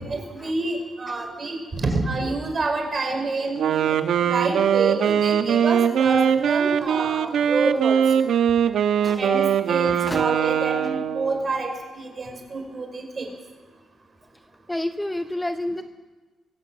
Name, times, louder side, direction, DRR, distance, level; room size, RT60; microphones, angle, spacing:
voice 1, 0.0-8.0 9.2-13.3, right 3 dB, 35° right, 4 dB, 5.2 m, -28 dB
Wind instrument woodwind instrument, 3.6-11.5, right 8 dB, 70° right, 1.0 m, -21 dB
voice 2, 9.9-10.2 14.7-15.8, left 1 dB, 5° left, 9 dB, 0.6 m, -30 dB
22.5 x 16.5 x 7.6 m, 1.3 s
cardioid pair, 120°, 0 cm